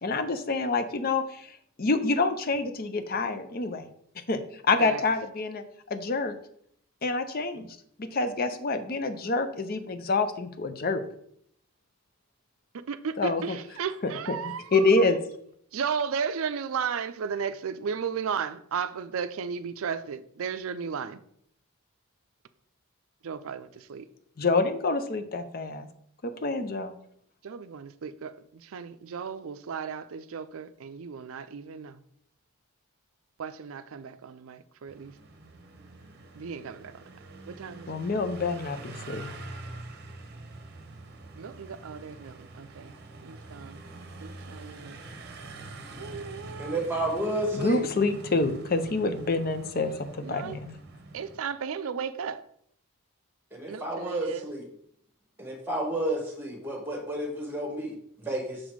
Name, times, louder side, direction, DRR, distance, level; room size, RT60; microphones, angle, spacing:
voice 1, 0.0-3.9 4.3-4.4 4.7-6.4 7.0-7.7 8.0-11.0 13.2-13.6 14.0-14.1 14.7-15.2 24.4-25.9 26.2-26.9 37.9-39.3 47.5-50.8, left 3 dB, 40° left, 0.5 m, -27 dB
voice 2, 12.7-14.8 15.7-21.2 23.2-24.1 27.4-32.0 33.4-35.1 36.4-37.1 37.5-38.0 41.4-43.0 43.2-43.8 44.2-45.0 45.9-46.8 50.2-50.6 51.1-52.4 53.7-54.5, right 6 dB, 65° right, 0.4 m, -35 dB
sound 1, 34.9-51.4, right 2 dB, 45° right, 0.8 m, -45 dB
voice 3, 46.6-47.8 53.5-54.6 55.4-58.6, right 1 dB, 10° right, 1.4 m, -31 dB
6.3 x 4.1 x 4.6 m
head